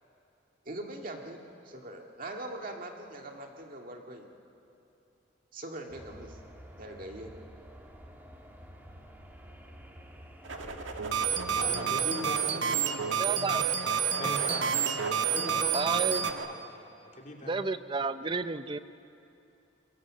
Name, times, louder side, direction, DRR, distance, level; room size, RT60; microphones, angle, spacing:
voice 1, 0.7-1.4 1.7-4.3 5.5-6.4 6.8-7.3, right 1 dB, 45° right, 2 dB, 2.0 m, -41 dB
sound 1, 5.9-11.8, equal, 10° right, 2.0 m, -49 dB
sound 2, 10.4-16.5, right 3 dB, 90° right, 1.8 m, -39 dB
sound 3, 11.0-16.3, right 8 dB, 70° right, 1.2 m, -29 dB
voice 2, 11.5-12.6 13.1-13.8 14.2-14.7 15.2-16.0 16.5-16.6 17.0-17.6, left 1 dB, 40° left, 0 dB, 3.0 m, -40 dB
voice 3, 13.2-13.7 15.7-16.3 17.4-18.8, right 3 dB, 25° right, 12 dB, 0.5 m, -31 dB
26.5 x 22.5 x 7.6 m, 2.7 s
head